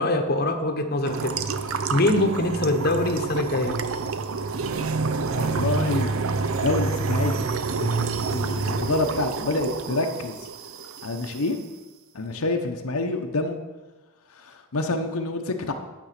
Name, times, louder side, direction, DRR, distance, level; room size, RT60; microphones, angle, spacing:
voice 1, 0.0-1.3 1.9-3.7, left 1 dB, 45° left, 4 dB, 0.9 m, -23 dB
sound 1, 1.0-11.5, right 4 dB, 70° right, 0.6 m, -28 dB
voice 2, 5.4-6.1 6.6-7.5 7.8-10.4 11.0-11.6 12.1-13.6 14.3-15.7, left 2 dB, 80° left, 4 dB, 0.8 m, -27 dB
9.7 x 6.9 x 5.8 m, 1.2 s
head